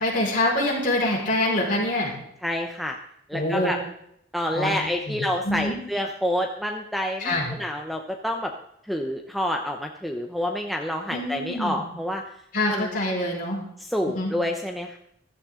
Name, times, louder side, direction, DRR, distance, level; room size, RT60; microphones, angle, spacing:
voice 1, 0.0-2.1 3.3-3.7 4.5-4.8 5.1-5.8 7.2-7.5 11.1-11.8 12.5-13.6 14.1-14.3, left 1 dB, 45° left, -3 dB, 4.9 m, -25 dB
voice 2, 2.4-3.0 3.3-3.8 4.3-8.5 8.9-12.2 12.7-12.9 13.9-15.0, equal, ahead, 3 dB, 0.7 m, -28 dB
15.0 x 13.0 x 3.8 m, 0.75 s
head